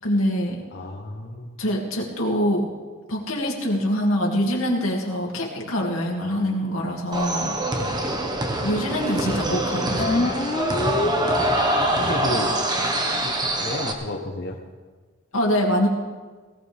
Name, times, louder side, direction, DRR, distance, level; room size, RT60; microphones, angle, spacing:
voice 1, 0.0-0.6 1.6-2.7 3.1-7.6 7.9-8.0 8.6-10.3 15.3-15.9, equal, 85° left, -1 dB, 2.6 m, -24 dB
voice 2, 0.7-1.6 11.8-12.5 13.2-13.3 13.6-14.6, left 2 dB, 55° left, -1 dB, 1.2 m, -32 dB
sound 1, 7.1-13.9, right 1 dB, 20° right, 1.2 m, -24 dB
sound 2, 10.0-12.0, left 3 dB, 35° left, 0.5 m, -26 dB
18.5 x 17.5 x 3.6 m, 1.4 s
head